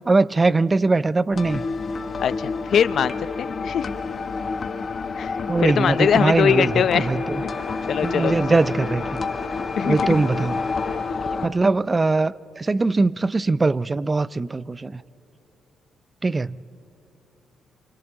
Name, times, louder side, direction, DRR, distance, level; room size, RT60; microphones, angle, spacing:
voice 1, 0.0-1.6 5.5-7.4 8.0-9.2 9.9-10.6 11.3-15.0 16.2-16.6, right 3 dB, 25° right, 0.4 m, -21 dB
sound 1, 1.3-11.5, left 4 dB, 45° left, 1.0 m, -29 dB
voice 2, 2.2-3.9 5.1-7.1 7.4-7.5 7.9-8.3 9.8-10.2, left 8 dB, 60° left, 0.6 m, -22 dB
sound 2, 5.7-11.0, left 2 dB, 15° left, 3.2 m, -36 dB
28.5 x 24.5 x 3.7 m
cardioid pair, 90°, 0 cm